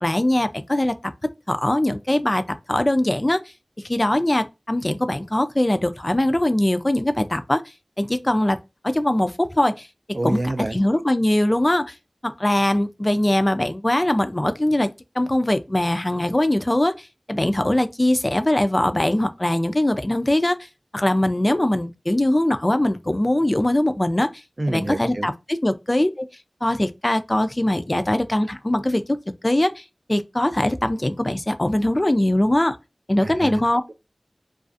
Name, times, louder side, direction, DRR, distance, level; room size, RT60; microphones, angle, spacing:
voice 1, 0.0-1.0 1.5-2.4 2.7-3.4 3.8-7.6 8.0-8.6 8.8-9.9 10.2-10.4 10.7-11.9 12.2-14.9 15.2-26.3 26.6-29.2 29.4-32.8 33.1-33.8, left 1 dB, 35° left, 0.3 m, -21 dB
voice 2, 10.1-10.8 24.6-25.3 33.2-33.6, right 1 dB, 65° right, 0.4 m, -27 dB
2.4 x 2.4 x 2.4 m
wide cardioid pair, 50°, 0 cm